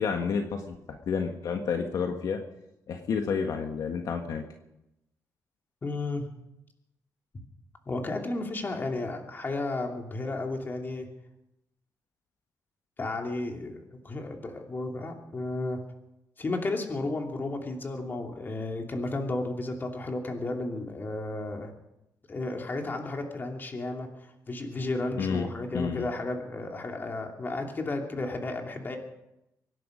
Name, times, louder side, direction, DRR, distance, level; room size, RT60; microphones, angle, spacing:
voice 1, 0.0-2.4 2.9-4.4 25.2-25.4 25.7-26.1, left 6 dB, 70° left, 4 dB, 1.5 m, -30 dB
voice 2, 5.8-6.3 7.3-7.4 7.9-11.1 13.0-15.8 16.4-21.7 22.3-29.0, left 2 dB, 30° left, 2 dB, 2.7 m, -33 dB
24.5 x 11.0 x 5.1 m, 0.88 s
cardioid pair, 120°, 6 cm